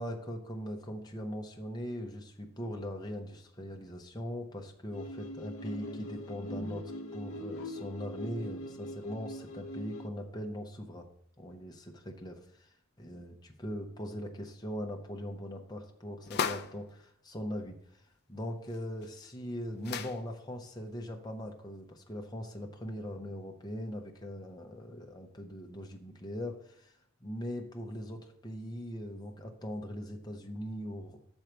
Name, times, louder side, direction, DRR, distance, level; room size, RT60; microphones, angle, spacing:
voice 1, 0.0-11.1 11.4-31.2, equal, 20° left, 3 dB, 0.8 m, -40 dB
sound 1, 4.9-10.1, equal, 75° left, 0.7 m, -41 dB
sound 2, 16.2-16.8 18.7-18.8 19.0-19.1 19.8-20.2, left 6 dB, 50° left, 0.4 m, -34 dB
6.4 x 4.4 x 6.4 m, 0.68 s
head